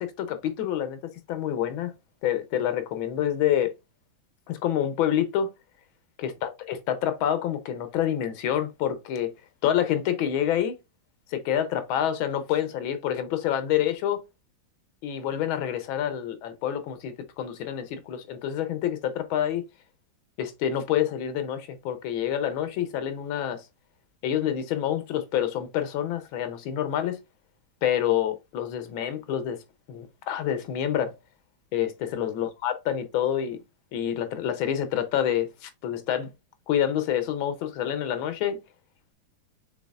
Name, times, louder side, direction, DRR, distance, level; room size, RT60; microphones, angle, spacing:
voice 1, 0.0-1.9 2.2-3.7 4.5-5.5 6.2-9.3 9.6-10.8 11.3-14.2 15.0-19.6 20.4-23.6 24.2-27.2 27.8-29.6 29.9-31.2 31.7-33.6 33.9-36.3 36.7-38.6, left 10 dB, 85° left, 1.5 m, -27 dB
6.3 x 3.4 x 2.3 m
omnidirectional pair, 2.1 m